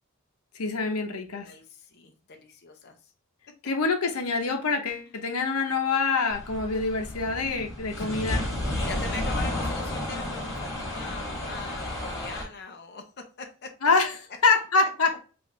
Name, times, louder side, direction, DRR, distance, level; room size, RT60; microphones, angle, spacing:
voice 1, 0.5-1.5 3.6-8.5 13.8-14.1 14.4-15.2, left 4 dB, 90° left, 0.9 m, -25 dB
voice 2, 1.4-3.1 5.0-5.1 8.0-8.4 8.8-13.0 13.4-13.7, left 4 dB, 50° left, 0.7 m, -41 dB
sound 1, 6.3-12.4, left 1 dB, 15° left, 1.9 m, -32 dB
4.6 x 2.6 x 3.1 m
head